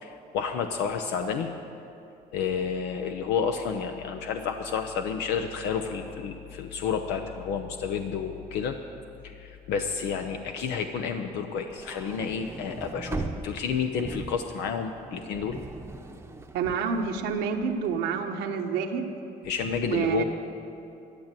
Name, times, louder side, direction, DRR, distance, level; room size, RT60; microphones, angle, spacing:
voice 1, 0.0-1.5 2.3-8.8 9.2-15.6 19.4-20.2, left 6 dB, 85° left, 5 dB, 0.8 m, -30 dB
sound 1, 11.7-18.0, right 2 dB, 15° right, 0.8 m, -39 dB
voice 2, 16.5-19.1 19.8-20.2, right 6 dB, 85° right, 3 dB, 1.2 m, -28 dB
12.5 x 12.0 x 7.6 m, 2.6 s
cardioid pair, 110°, 17 cm